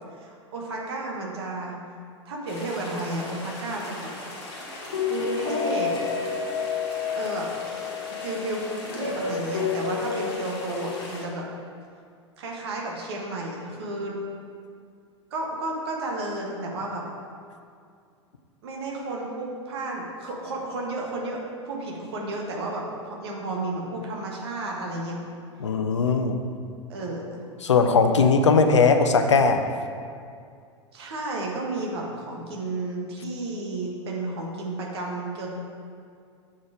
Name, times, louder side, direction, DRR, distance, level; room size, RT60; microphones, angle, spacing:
voice 1, 0.1-1.8 2.2-4.1 5.1-6.0 7.2-7.5 8.1-11.5 12.4-14.2 15.3-17.1 18.6-25.2 26.9-27.5 30.9-35.5, right 2 dB, 60° right, -1 dB, 1.4 m, -32 dB
sound 1, 2.5-11.2, left 5 dB, 55° left, 1.6 m, -31 dB
voice 2, 25.6-26.4 27.6-29.6, left 4 dB, 75° left, 6 dB, 0.5 m, -19 dB
7.1 x 4.1 x 4.8 m, 2.3 s
figure-of-eight pair, 85°, 15 cm